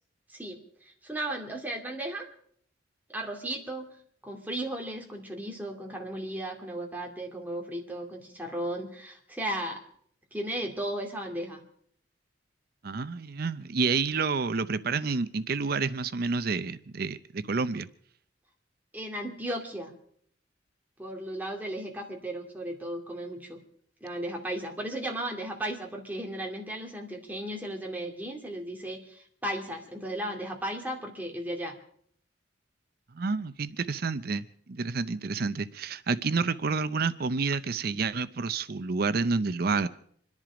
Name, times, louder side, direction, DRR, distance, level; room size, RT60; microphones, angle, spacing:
voice 1, 0.3-2.3 3.1-3.9 4.2-9.8 10.3-11.6 18.9-19.9 21.0-23.6 24.0-31.8, right 1 dB, 10° right, 1 dB, 2.3 m, -35 dB
voice 2, 12.8-17.9 33.1-39.9, right 4 dB, 50° right, 14 dB, 0.6 m, -29 dB
26.5 x 10.5 x 5.0 m, 0.62 s
head